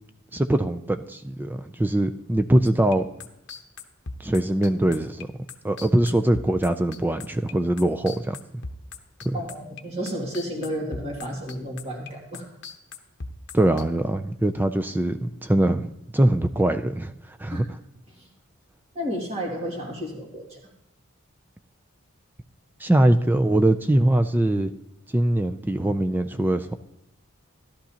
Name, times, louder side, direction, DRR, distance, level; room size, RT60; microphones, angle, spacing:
voice 1, 0.3-3.1 4.2-5.3 5.6-8.4 9.2-9.4 13.5-17.1 17.4-17.8 22.8-24.7 25.1-26.7, right 1 dB, 10° right, 8 dB, 0.3 m, -22 dB
sound 1, 2.7-9.8 10.1-13.8, left 4 dB, 50° left, 0.9 m, -38 dB
voice 2, 9.3-12.4 17.5-17.6 18.2-18.3 18.9-20.6, equal, 30° right, -1 dB, 2.1 m, -32 dB
15.5 x 11.5 x 2.8 m, 0.85 s
head